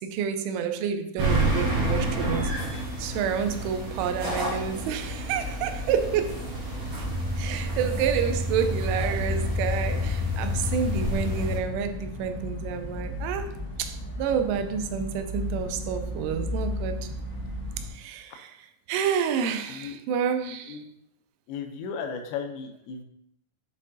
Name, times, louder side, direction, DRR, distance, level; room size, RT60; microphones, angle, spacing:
voice 1, 0.0-2.5 3.0-6.4 7.0-7.1 7.4-13.5 13.8-17.1 17.8-20.8, right 7 dB, 85° right, 7 dB, 3.1 m, -29 dB
sound 1, 1.2-11.6, equal, 55° right, 2.9 m, -29 dB
sound 2, 5.1-17.9, left 1 dB, 50° left, 2.1 m, -36 dB
voice 2, 21.5-23.0, left 6 dB, 80° left, 4 dB, 2.8 m, -35 dB
7.3 x 5.3 x 2.7 m, 0.74 s
omnidirectional pair, 5.5 m